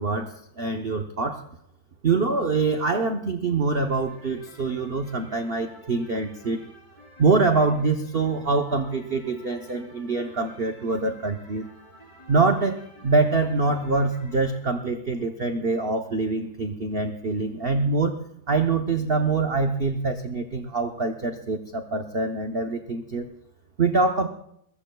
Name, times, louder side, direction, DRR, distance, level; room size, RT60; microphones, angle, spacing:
voice 1, 0.0-1.4 2.0-6.6 7.2-11.6 12.3-18.2 18.5-23.3 23.8-24.3, right 3 dB, 60° right, 5 dB, 0.6 m, -24 dB
sound 1, 3.7-14.6, equal, 15° left, 5.0 m, -51 dB
22.5 x 20.0 x 2.3 m, 0.75 s
omnidirectional pair, 2.1 m